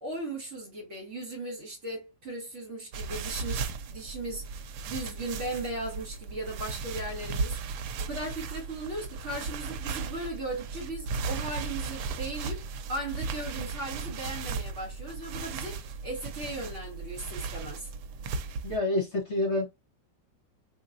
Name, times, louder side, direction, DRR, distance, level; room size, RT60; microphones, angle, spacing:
voice 1, 0.0-7.6 8.0-12.6 12.9-17.9, right 2 dB, 45° right, 1.4 m, -37 dB
sound 1, 2.9-18.8, right 4 dB, 75° right, 1.1 m, -36 dB
voice 2, 18.6-19.7, left 2 dB, 45° left, 1.3 m, -27 dB
3.7 x 2.9 x 2.5 m
omnidirectional pair, 1.9 m